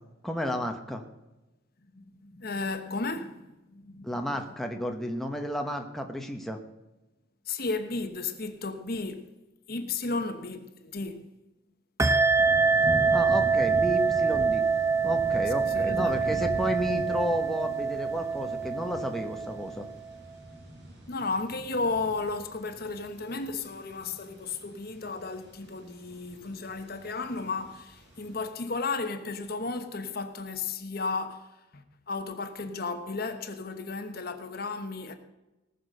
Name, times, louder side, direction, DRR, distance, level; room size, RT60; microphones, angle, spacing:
voice 1, 0.2-1.0 4.0-6.6 13.1-14.6 15.0-19.9, equal, ahead, 1.0 m, -32 dB
voice 2, 1.9-3.5 3.7-4.1 7.5-9.3 9.7-11.3 15.7-16.5 21.1-31.5 31.7-35.2, left 3 dB, 50° left, 1.1 m, -34 dB
sound 1, 12.0-20.1, right 5 dB, 15° right, 0.6 m, -25 dB
sound 2, 12.4-28.4, equal, 55° right, 5.8 m, -41 dB
19.0 x 6.8 x 6.7 m
head